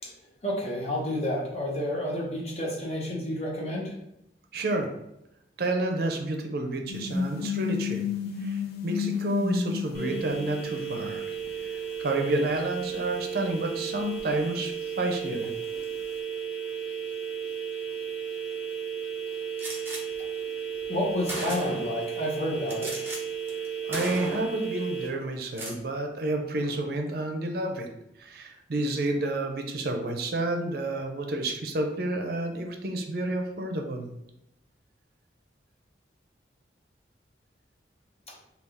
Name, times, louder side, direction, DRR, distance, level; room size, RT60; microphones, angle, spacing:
voice 1, 0.4-3.9 20.9-23.1 38.3-38.4, left 1 dB, 35° left, -3 dB, 0.8 m, -30 dB
voice 2, 4.5-4.9 5.6-8.0 8.4-11.2 11.6-15.5 23.8-27.9 28.2-34.1, right 2 dB, 60° right, 3 dB, 0.5 m, -30 dB
sound 1, 6.9-11.2 11.5-11.6 14.2-14.3, left 6 dB, 55° left, 0.4 m, -32 dB
sound 2, 9.9-25.1, right 8 dB, 10° left, 1.0 m, -34 dB
Gunshot gunfire, 19.6-20.0 20.8-20.9 21.3-22.0 22.7-23.2 23.5-23.7 23.9-24.6 25.4-25.8, right 1 dB, 15° right, 0.7 m, -35 dB
3.5 x 2.3 x 3.4 m, 0.84 s
head